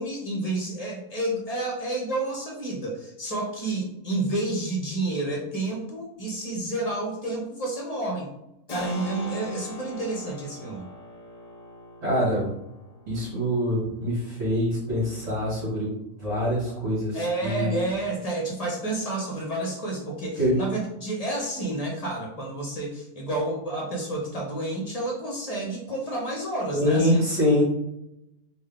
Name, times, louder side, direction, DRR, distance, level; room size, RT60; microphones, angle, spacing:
voice 1, 0.0-8.3 8.7-10.9 17.1-27.2, right 2 dB, 35° left, -1 dB, 0.7 m, -30 dB
Keyboard (musical), 8.7-19.1, left 2 dB, 65° left, 0.4 m, -43 dB
voice 2, 12.0-12.5 13.1-15.9 16.2-17.7 20.4-20.6 26.7-27.6, equal, 45° right, -9 dB, 1.6 m, -24 dB
3.8 x 2.5 x 3.3 m, 0.86 s
omnidirectional pair, 1.6 m